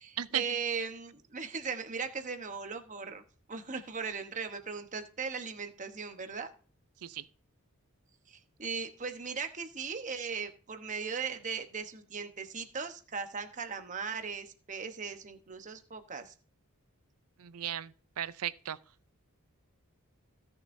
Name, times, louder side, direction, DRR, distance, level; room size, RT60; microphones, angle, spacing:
voice 1, 0.0-3.2 3.5-6.5 8.3-16.3, right 5 dB, 35° right, 1.0 m, -38 dB
voice 2, 17.4-18.8, right 11 dB, 90° right, 0.5 m, -36 dB
16.5 x 6.8 x 2.6 m
head